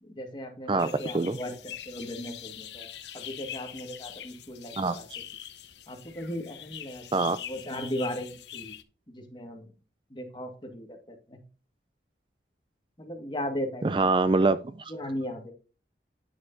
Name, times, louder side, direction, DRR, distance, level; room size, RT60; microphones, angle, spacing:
voice 1, 0.0-5.1 5.9-8.7 9.1-9.7 10.1-11.4 13.0-14.1 14.9-15.5, equal, 25° left, 1.8 m, -37 dB
sound 1, 0.8-8.8, left 10 dB, 80° left, 0.9 m, -43 dB
voice 2, 13.8-14.9, right 3 dB, 30° right, 0.3 m, -24 dB
9.7 x 6.4 x 2.7 m
head